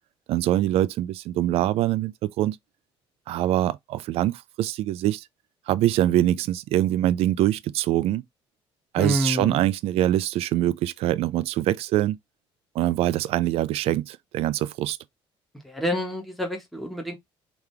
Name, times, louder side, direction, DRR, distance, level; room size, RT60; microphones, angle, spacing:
voice 1, 0.3-2.6 3.3-5.2 5.7-8.2 8.9-12.2 12.8-15.0, right 13 dB, 75° right, 0.5 m, -24 dB
voice 2, 8.9-9.7 15.6-17.1, equal, ahead, 1.5 m, -28 dB
5.0 x 3.0 x 3.4 m
cardioid pair, 130°, 10 cm